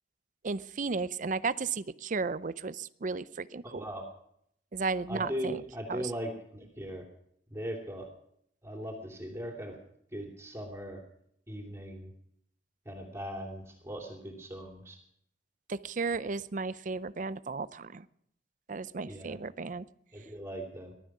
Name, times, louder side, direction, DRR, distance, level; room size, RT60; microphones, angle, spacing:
voice 1, 0.4-3.9 4.7-5.6 5.9-6.1 15.7-18.1 18.7-19.9, right 4 dB, 45° right, 15 dB, 0.6 m, -34 dB
voice 2, 3.6-4.1 5.1-7.1 7.5-8.1 8.6-9.8 10.1-11.0 11.5-12.1 12.8-15.0 19.1-19.4 20.1-20.9, equal, 15° right, 0 dB, 2.8 m, -39 dB
19.0 x 12.5 x 6.1 m, 0.72 s
head